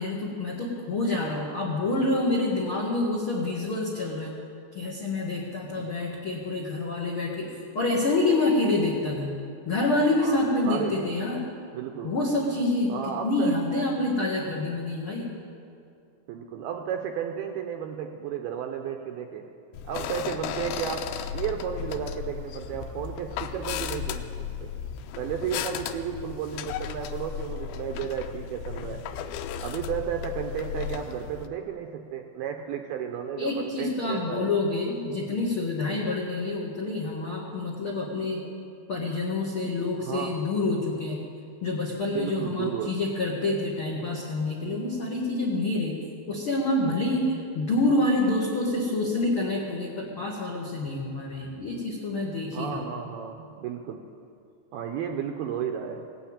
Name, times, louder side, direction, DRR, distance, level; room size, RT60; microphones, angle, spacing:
voice 1, 0.0-4.3 4.7-9.3 9.6-11.5 12.0-15.3 33.4-38.4 38.9-41.2 41.6-45.9 46.3-52.9, left 2 dB, 75° left, -3 dB, 1.2 m, -27 dB
voice 2, 10.2-10.9 11.7-12.1 12.9-13.6 16.3-19.4 19.9-24.7 25.2-29.0 29.6-34.5 40.0-40.4 42.1-42.9 52.5-54.0 54.7-56.0, right 8 dB, 80° right, 4 dB, 2.3 m, -33 dB
sound 1, 19.7-31.5, left 9 dB, 90° left, 3.0 m, -35 dB
18.0 x 9.0 x 8.7 m, 2.5 s
omnidirectional pair, 5.1 m